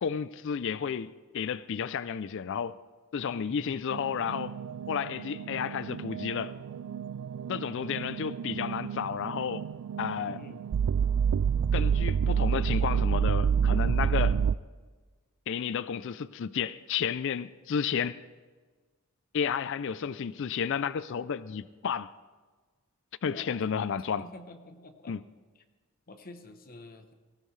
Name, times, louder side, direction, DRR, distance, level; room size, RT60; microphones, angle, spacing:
voice 1, 0.0-2.8 3.1-4.6 4.9-6.5 7.5-9.7 10.0-10.4 11.7-14.4 15.5-18.2 19.3-22.1 23.2-24.2 25.1-25.2, left 7 dB, 55° left, 0.4 m, -32 dB
voice 2, 3.3-3.8 10.3-10.6 23.3-23.8 24.2-25.2 25.5-25.6 26.1-27.1, left 2 dB, 40° left, 0.9 m, -48 dB
sound 1, 3.9-14.6, right 7 dB, 75° right, 0.3 m, -29 dB
18.5 x 16.0 x 3.2 m
head